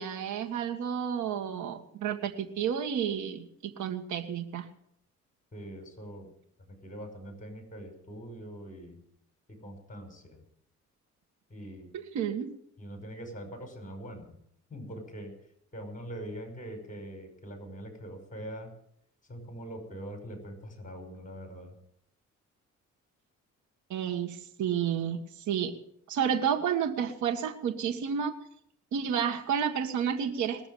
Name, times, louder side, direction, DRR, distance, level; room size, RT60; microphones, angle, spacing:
voice 1, 0.0-4.7 11.9-12.5 23.9-25.2 25.5-25.7 26.1-28.3 28.9-30.7, right 8 dB, 70° right, 5 dB, 1.7 m, -31 dB
voice 2, 5.5-6.3 6.7-9.0 9.6-10.4 11.5-11.9 12.8-14.4 14.7-15.3 15.7-18.7 19.3-21.7, right 1 dB, 25° left, 5 dB, 5.5 m, -43 dB
20.5 x 7.1 x 9.1 m, 0.69 s
cardioid pair, 90°, 30 cm